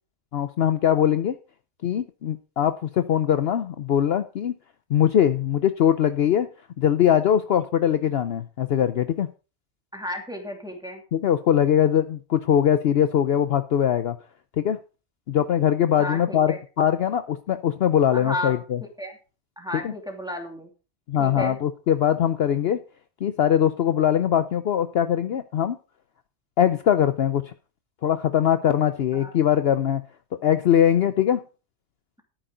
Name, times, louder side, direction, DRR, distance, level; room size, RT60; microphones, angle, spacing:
voice 1, 0.3-1.3 1.8-4.5 4.9-6.5 6.8-9.3 11.1-14.2 14.6-14.8 15.3-18.8 19.8-19.9 21.1-22.8 23.2-25.8 26.6-27.5 28.0-30.0 30.4-31.4, left 9 dB, 60° left, 11 dB, 0.8 m, -21 dB
voice 2, 9.9-11.0 16.0-16.6 18.1-18.6 19.0-19.2 19.6-20.7 21.2-21.6 29.1-29.3, left 1 dB, 5° right, 2 dB, 2.6 m, -33 dB
13.0 x 9.3 x 3.8 m, 0.33 s
omnidirectional pair, 1.3 m